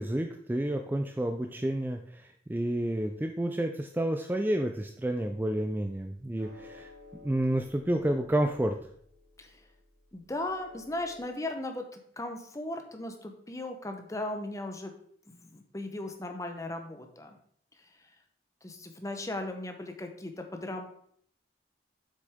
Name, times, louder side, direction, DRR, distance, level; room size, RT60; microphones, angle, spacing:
voice 1, 0.0-6.9 7.2-8.7, right 1 dB, 10° right, 5 dB, 0.4 m, -30 dB
sound 1, 5.3-11.2, left 3 dB, 60° right, 3.3 m, -55 dB
voice 2, 10.1-14.9 15.3-17.4 17.8-18.1 18.6-20.9, left 2 dB, 20° left, 5 dB, 0.9 m, -37 dB
7.6 x 6.3 x 3.6 m, 0.64 s
head